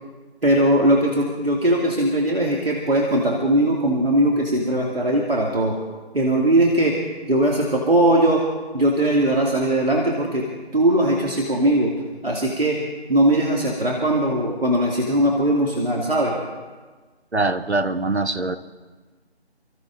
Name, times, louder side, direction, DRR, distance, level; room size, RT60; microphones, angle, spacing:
voice 1, 0.4-5.8 6.1-7.0 7.3-8.5 8.7-10.5 10.7-11.9 12.2-12.8 13.1-16.4, right 1 dB, 60° right, -2 dB, 2.6 m, -20 dB
voice 2, 17.3-18.6, right 2 dB, 80° right, 9 dB, 1.1 m, -23 dB
29.5 x 14.0 x 2.7 m, 1.3 s
figure-of-eight pair, 160°, 32 cm